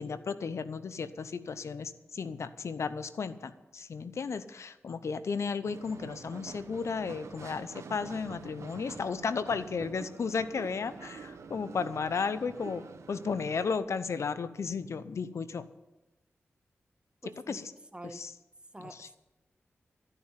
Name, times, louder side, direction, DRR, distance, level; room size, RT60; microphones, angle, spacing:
voice 1, 0.0-12.8 13.1-15.7 17.5-17.7 18.0-18.3 18.8-19.1, left 5 dB, 75° left, 13 dB, 0.7 m, -34 dB
sound 1, 5.6-13.8, right 5 dB, 80° right, 1.0 m, -47 dB
voice 2, 17.2-17.6 17.9-18.2 18.7-19.2, right 1 dB, 20° right, 8 dB, 1.4 m, -46 dB
14.0 x 6.7 x 9.7 m, 1.0 s
cardioid pair, 45°, 5 cm